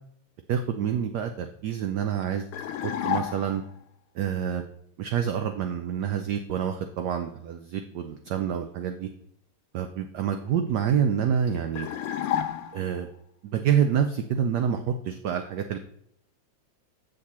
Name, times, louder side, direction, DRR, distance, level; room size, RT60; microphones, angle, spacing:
voice 1, 0.5-2.5 2.8-3.6 4.1-4.6 5.0-9.1 9.7-11.9 12.7-13.1 13.4-15.8, right 8 dB, 75° right, 7 dB, 0.9 m, -27 dB
sound 1, 2.5-3.7 11.8-13.1, left 10 dB, 90° left, 1.5 m, -30 dB
7.6 x 6.6 x 4.2 m, 0.70 s
omnidirectional pair, 2.3 m